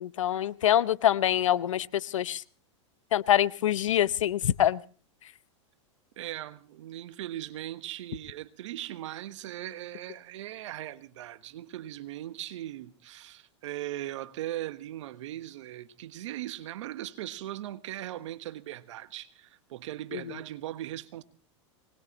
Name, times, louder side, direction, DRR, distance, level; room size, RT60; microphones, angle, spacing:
voice 1, 0.0-2.4 3.1-4.8 20.1-20.2, left 11 dB, 85° left, 0.7 m, -25 dB
voice 2, 6.2-21.2, right 13 dB, 70° right, 1.3 m, -39 dB
24.0 x 19.5 x 3.0 m
hypercardioid pair, 110°, 16 cm